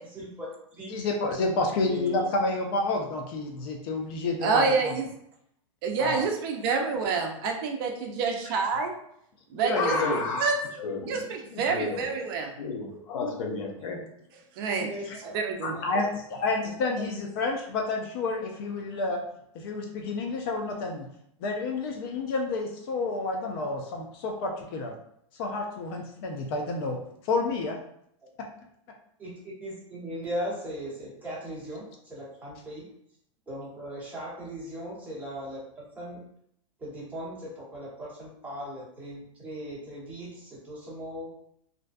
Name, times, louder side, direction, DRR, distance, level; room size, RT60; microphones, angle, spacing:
voice 1, 0.1-0.9 1.8-2.3 14.8-15.3 15.7-16.0 16.6-16.9 29.2-29.3 29.6-32.9 33.5-36.2 36.8-41.3, equal, 10° right, -8 dB, 1.0 m, -38 dB
voice 2, 0.9-4.9 6.0-6.2 15.1-15.2 15.6-19.2 19.5-21.1 21.4-24.9 25.3-27.0 27.2-27.8, left 3 dB, 45° left, 2 dB, 0.4 m, -29 dB
voice 3, 4.4-5.0 5.8-8.9 9.5-9.9 10.4-10.5 11.0-12.5 14.6-14.9 15.3-15.8, right 4 dB, 45° right, 3 dB, 0.4 m, -27 dB
voice 4, 9.6-10.5 10.8-11.2 11.5-12.1 12.6-14.0, left 4 dB, 85° left, 1 dB, 0.6 m, -30 dB
2.5 x 2.2 x 2.4 m, 0.71 s
supercardioid pair, 145°, 17 cm